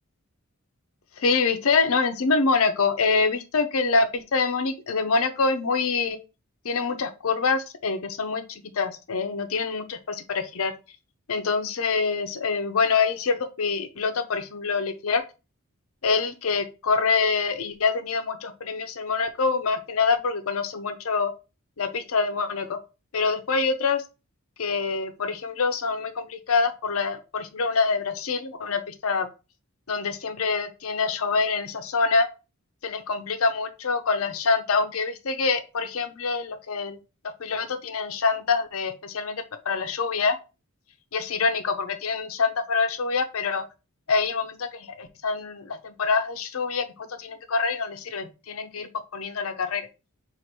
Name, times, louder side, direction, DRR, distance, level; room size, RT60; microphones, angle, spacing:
voice 1, 1.2-6.2 6.6-10.7 11.3-15.2 16.0-21.3 21.8-22.8 23.1-24.0 24.6-29.3 29.9-32.3 32.8-37.0 37.4-40.4 41.1-43.6 44.1-46.9 47.2-49.9, left 4 dB, 75° left, 7 dB, 0.7 m, -25 dB
4.6 x 2.5 x 4.3 m, 0.29 s
head